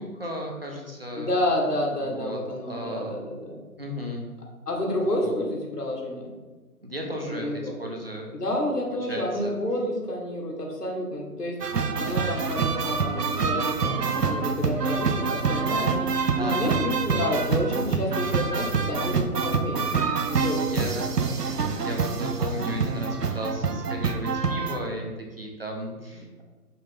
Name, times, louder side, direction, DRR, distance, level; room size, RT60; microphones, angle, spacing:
voice 1, 0.0-1.3 2.0-2.4 2.7-3.2 3.8-4.2 4.9-5.3 6.8-8.3 9.1-9.5 16.3-16.8 18.0-18.2 19.0-19.3 20.7-21.2 21.8-26.4, equal, 40° right, 0 dB, 0.8 m, -34 dB
voice 2, 1.1-3.6 4.7-6.3 7.3-7.8 8.3-11.6 12.0-16.0 16.4-21.0 21.5-21.7 26.1-26.4, left 1 dB, 75° left, -1 dB, 2.0 m, -30 dB
sound 1, 11.6-24.8, right 5 dB, 80° right, 0.8 m, -26 dB
5.7 x 3.3 x 5.4 m, 1.3 s
figure-of-eight pair, 175°, 47 cm